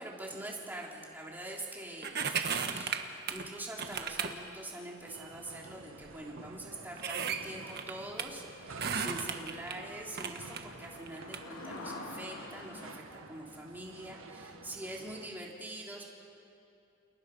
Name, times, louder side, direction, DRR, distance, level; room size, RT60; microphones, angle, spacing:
voice 1, 0.0-16.0, right 1 dB, 10° right, -2 dB, 3.5 m, -44 dB
sound 1, 2.0-3.5 3.8-4.4 5.1-5.2 6.0-6.1 6.4-6.5 7.0-8.3 8.8-9.7 10.2-11.4 11.9-12.0, right 6 dB, 50° right, 1.4 m, -35 dB
sound 2, 3.3-4.8 8.4-8.5 9.0-9.1 9.2-13.0, left 2 dB, 80° left, 3.4 m, -48 dB
sound 3, 5.1-15.3, right 2 dB, 80° right, 1.8 m, -50 dB
29.5 x 29.5 x 5.6 m, 2.7 s
head